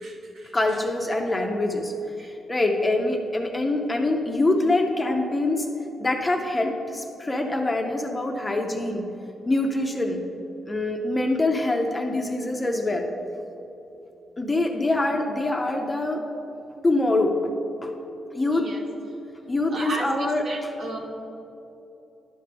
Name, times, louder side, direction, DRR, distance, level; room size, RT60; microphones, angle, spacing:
voice 1, 0.5-5.7 6.0-9.0 9.5-10.2 10.7-13.1 14.4-16.2 16.8-17.3 17.8-17.9 18.3-18.7 19.5-20.7, left 2 dB, 15° left, 2 dB, 0.5 m, -24 dB
voice 2, 19.7-20.1 20.5-21.0, right 2 dB, 50° right, 0 dB, 1.1 m, -33 dB
11.0 x 5.5 x 3.4 m, 2.9 s
wide cardioid pair, 155°, 0 cm